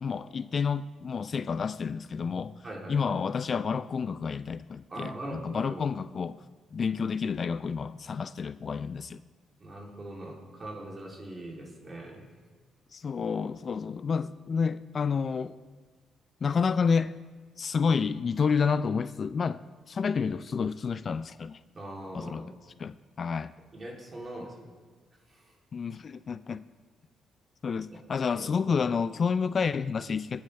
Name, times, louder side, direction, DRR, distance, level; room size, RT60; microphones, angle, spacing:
voice 1, 0.0-2.6 2.9-6.4 6.7-9.2 12.9-15.6 16.4-17.1 17.6-19.6 19.9-21.6 22.1-22.5 22.8-23.5 25.7-26.6 27.6-30.4, left 5 dB, 45° left, 0.3 m, -29 dB
voice 2, 2.6-3.0 4.9-5.8 9.6-12.2 21.7-22.5 23.7-24.7 25.3-25.5 27.9-28.0 28.4-28.8, right 1 dB, 35° right, 3.0 m, -41 dB
19.5 x 8.6 x 3.3 m
cardioid pair, 90°, 0 cm